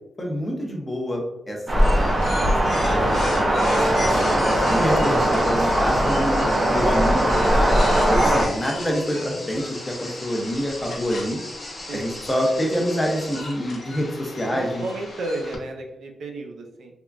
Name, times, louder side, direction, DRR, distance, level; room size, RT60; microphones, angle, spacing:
voice 1, 0.2-2.1 2.7-3.5 4.3-6.4 6.7-11.4 11.9-14.8, equal, 20° left, -1 dB, 0.7 m, -26 dB
sound 1, 1.7-8.4, right 1 dB, 30° right, 0.6 m, -20 dB
sound 2, 1.8-15.6, left 2 dB, 65° left, 0.6 m, -35 dB
sound 3, 3.8-13.4, left 1 dB, 35° left, 0.9 m, -39 dB
voice 2, 11.9-12.2 14.4-16.9, right 2 dB, 85° right, 2 dB, 0.5 m, -33 dB
3.5 x 2.1 x 2.4 m, 0.91 s
wide cardioid pair, 115°, 0 cm